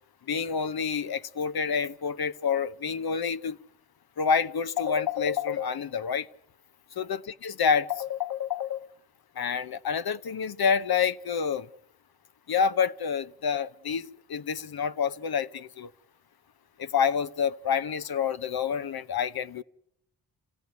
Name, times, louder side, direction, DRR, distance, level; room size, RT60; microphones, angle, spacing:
voice 1, 0.3-3.6 4.2-6.3 7.0-8.9 9.4-11.7 12.5-15.9 16.8-19.6, left 6 dB, 60° left, 0.8 m, -28 dB
27.5 x 16.0 x 9.3 m
cardioid pair, 50°, 41 cm